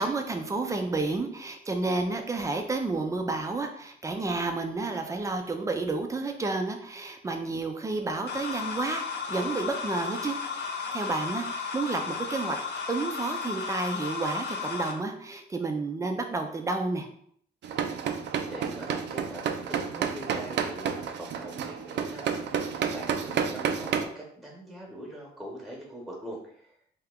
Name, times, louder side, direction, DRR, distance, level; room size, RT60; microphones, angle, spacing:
voice 1, 0.0-10.4 10.7-12.6 12.9-17.1, right 3 dB, 15° right, 5 dB, 0.4 m, -30 dB
sound 1, 8.3-14.9, left 5 dB, 75° left, 0.6 m, -34 dB
sound 2, 17.6-24.0, right 7 dB, 85° right, 0.4 m, -30 dB
voice 2, 18.5-19.4 19.7-22.5 22.9-26.7, right 1 dB, ahead, -2 dB, 1.1 m, -42 dB
3.4 x 2.9 x 3.5 m, 0.63 s
wide cardioid pair, 160°, 18 cm